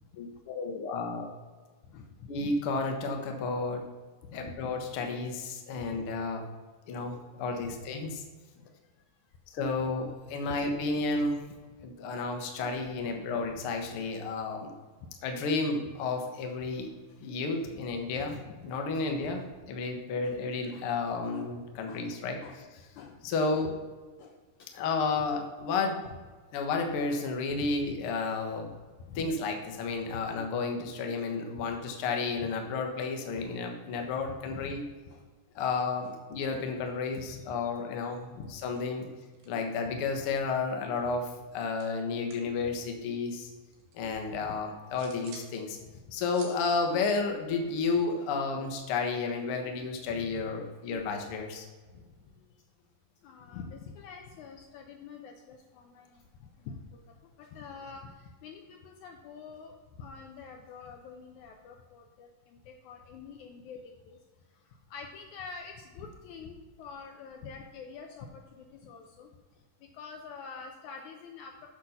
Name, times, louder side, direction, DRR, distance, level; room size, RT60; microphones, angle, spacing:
voice 1, 0.2-1.3 2.3-3.8 4.3-6.5 6.9-8.2 9.5-11.5 11.8-14.7 15.2-16.9 17.2-18.3 18.6-22.4 23.2-23.7 24.7-26.0 26.5-28.7 29.1-34.8 35.5-39.1 39.5-41.3 41.5-43.5 43.9-45.8 46.1-51.7, left 4 dB, 55° left, 3 dB, 1.6 m, -32 dB
voice 2, 1.8-2.3 4.2-4.6 5.8-5.9 7.6-7.8 8.6-8.7 9.8-9.9 10.3-10.6 11.8-11.9 13.4-13.5 17.1-17.3 17.7-18.6 18.9-19.5 20.2-20.4 20.7-20.9 21.3-21.5 21.9-22.1 22.4-22.6 22.9-23.7 24.2-24.9 25.3-25.4 27.5-27.7 29.0-29.3 30.1-30.2 31.3-31.8 32.4-32.5 33.0-33.1 33.4-33.6 33.9-34.1 34.4-35.2 35.6-35.7 36.0-36.2 36.5-36.6 37.1-38.1 38.4-38.5 39.9-40.0 44.1-44.6 45.8-46.0 50.1-50.4 51.9-52.5 53.2-64.2 64.5-69.3 69.8-71.7, left 5 dB, 75° left, 3 dB, 1.9 m, -47 dB
sound 1, 38.3-38.5 38.8-40.0 40.3-42.5 42.8-44.1 44.5-45.5 45.9-48.0, right 4 dB, 85° right, 3.4 m, -54 dB
8.3 x 6.2 x 5.7 m, 1.4 s
omnidirectional pair, 3.9 m